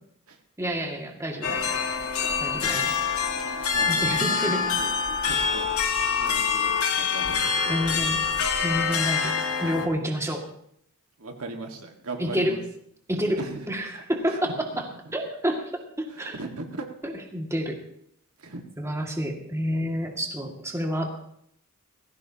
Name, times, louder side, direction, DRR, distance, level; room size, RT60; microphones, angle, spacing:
voice 1, 0.6-1.7 2.4-2.9 3.9-4.6 7.7-8.2 8.6-10.4 12.2-12.5 13.1-13.4 13.7-14.5 14.8-14.9 15.1-15.6 16.0-16.4 17.0-17.8 18.8-21.1, equal, 15° right, 1 dB, 2.1 m, -29 dB
sound 1, 1.4-9.9, left 6 dB, 75° left, 1.7 m, -25 dB
voice 2, 3.7-4.9 5.2-5.7 6.1-7.8 11.2-12.6 13.4-13.6 13.9-14.0 14.3-14.4 16.1-16.9 18.4-18.6, right 2 dB, 75° right, 3 dB, 1.8 m, -38 dB
19.0 x 15.5 x 2.9 m, 0.69 s
head